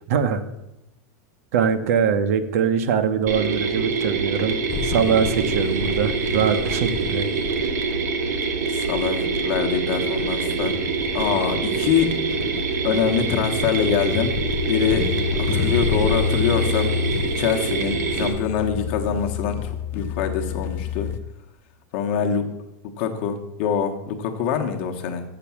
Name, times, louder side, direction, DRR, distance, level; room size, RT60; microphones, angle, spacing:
voice 1, 0.1-0.4 1.5-4.6 4.8-7.3, right 7 dB, 55° right, 9 dB, 0.9 m, -22 dB
Mechanisms, 3.3-18.3, right 5 dB, 80° right, 1.5 m, -25 dB
sound 1, 4.7-21.2, left 7 dB, 25° left, 0.5 m, -29 dB
voice 2, 8.7-10.8 11.1-12.1 12.8-14.3 14.7-15.1 15.3-16.9 17.4-21.1 21.9-22.5 23.0-25.2, left 7 dB, 40° left, 4 dB, 1.1 m, -24 dB
7.1 x 6.9 x 7.1 m, 0.89 s
supercardioid pair, 175°, 9 cm